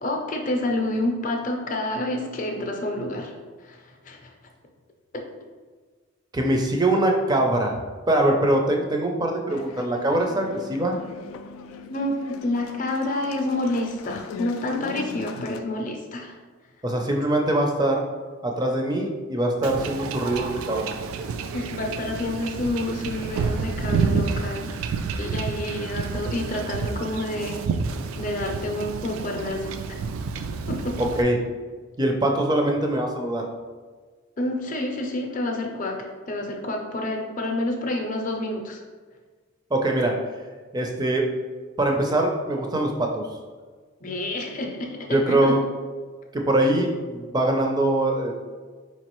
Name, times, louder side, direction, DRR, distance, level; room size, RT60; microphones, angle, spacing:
voice 1, 0.0-3.4 3.6-4.3 11.9-16.4 21.5-24.8 25.2-27.6 28.2-30.0 30.7-31.1 34.4-36.0 36.3-38.8 44.0-45.6, left 1 dB, 40° left, 2 dB, 0.5 m, -28 dB
voice 2, 6.3-7.8 8.1-11.0 16.8-18.0 18.4-20.9 31.0-31.4 32.0-33.5 39.7-40.1 40.7-41.3 41.8-43.2 45.1-45.6 46.3-48.4, right 1 dB, 20° right, 2 dB, 0.4 m, -23 dB
sound 1, 9.5-15.6, left 5 dB, 90° left, 0.3 m, -39 dB
Wind / Ocean / Boat Water vehicle, 19.6-31.2, right 5 dB, 85° right, 0.3 m, -29 dB
4.6 x 3.0 x 3.0 m, 1.5 s
head